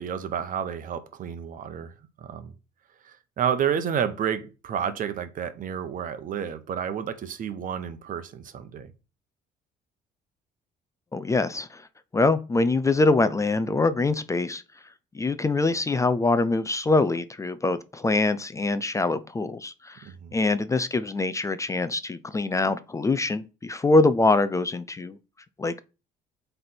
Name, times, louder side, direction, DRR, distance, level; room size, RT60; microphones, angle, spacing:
voice 1, 0.0-1.9 2.2-2.5 3.0-8.9 20.0-20.3, right 8 dB, 55° right, 1.0 m, -30 dB
voice 2, 11.1-11.9 12.1-14.6 15.1-25.2 25.6-25.8, left 3 dB, 20° left, 0.5 m, -24 dB
7.9 x 3.4 x 4.4 m
cardioid pair, 110°, 17 cm